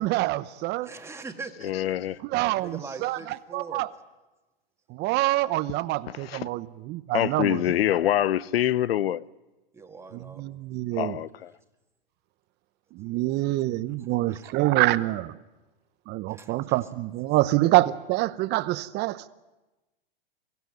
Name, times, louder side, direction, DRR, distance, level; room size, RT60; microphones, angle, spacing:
voice 1, 0.0-0.9 2.2-3.9 4.9-7.6 10.1-11.2 12.9-15.4 16.1-19.3, right 17 dB, 35° right, 0.9 m, -26 dB
voice 2, 0.8-1.9 2.5-3.8 9.7-10.4 13.4-13.6 14.3-14.5 16.3-16.8, right 4 dB, 10° right, 1.9 m, -42 dB
voice 3, 1.6-2.2 6.1-6.5 7.1-9.2 10.9-11.5, left 12 dB, 80° left, 0.7 m, -25 dB
23.5 x 15.5 x 9.2 m
hypercardioid pair, 120°, 30 cm